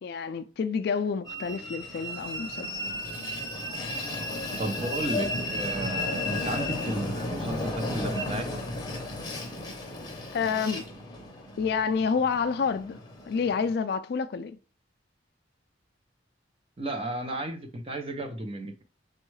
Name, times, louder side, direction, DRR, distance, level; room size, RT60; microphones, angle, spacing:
voice 1, 0.0-2.7 10.3-10.9 11.6-13.0 13.3-14.6, left 5 dB, 55° left, 0.3 m, -28 dB
Train, 1.3-13.7, left 1 dB, 20° left, 0.7 m, -34 dB
voice 2, 4.6-8.5 16.8-18.8, right 1 dB, 30° right, 0.6 m, -33 dB
6.2 x 2.3 x 3.1 m
head